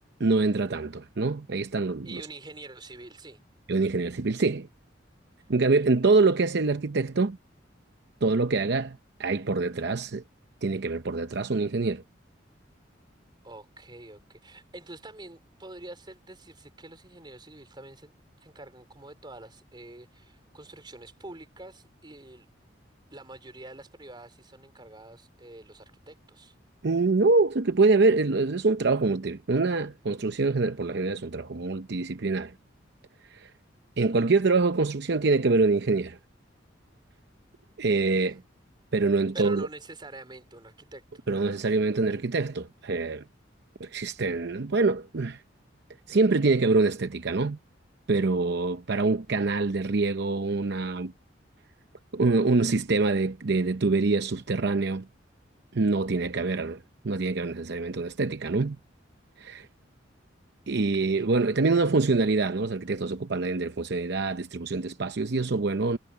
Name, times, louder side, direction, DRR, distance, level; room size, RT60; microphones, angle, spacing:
voice 1, 0.2-2.2 3.7-4.7 5.5-7.4 8.2-10.2 10.6-12.0 26.8-32.5 33.3-33.5 34.0-36.2 37.8-38.4 38.9-39.7 41.3-43.2 43.8-45.4 46.1-47.6 48.1-51.1 52.1-55.1 55.7-58.8 59.4-59.7 60.7-66.0, right 3 dB, 60° right, 0.7 m, -25 dB
voice 2, 2.0-3.4 13.4-22.5 23.1-26.5 38.0-38.4 39.3-41.2 60.7-61.3, right 2 dB, 25° right, 4.1 m, -46 dB
head